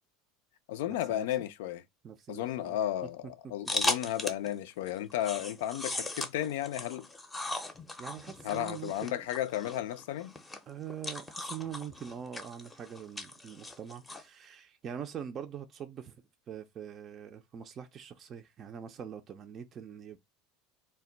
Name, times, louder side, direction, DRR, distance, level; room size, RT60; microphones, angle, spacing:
voice 1, 0.7-1.8 2.3-7.1 8.4-10.3, left 12 dB, 75° left, 0.3 m, -33 dB
voice 2, 2.0-2.8 8.0-9.2 10.7-16.2 16.5-20.2, right 8 dB, 35° right, 0.4 m, -43 dB
sound 1, 3.7-4.5 4.9-14.2, left 2 dB, 15° left, 0.6 m, -37 dB
2.1 x 2.1 x 3.8 m
hypercardioid pair, 100°, 0 cm